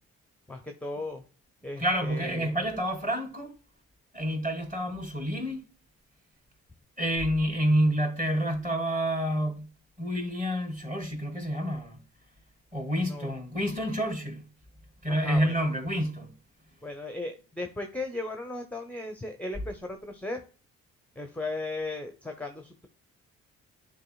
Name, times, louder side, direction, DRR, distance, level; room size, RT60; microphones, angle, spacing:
voice 1, 0.5-1.2 1.6-2.6 13.1-13.3 15.1-15.5 16.8-20.4 21.1-22.9, left 2 dB, 5° left, 0.9 m, -36 dB
voice 2, 1.8-3.5 4.1-5.6 7.0-9.7 10.0-12.0 12.7-14.4 15.0-16.3, equal, 20° right, 2.6 m, -28 dB
11.0 x 4.0 x 2.3 m
hypercardioid pair, 45°, 37 cm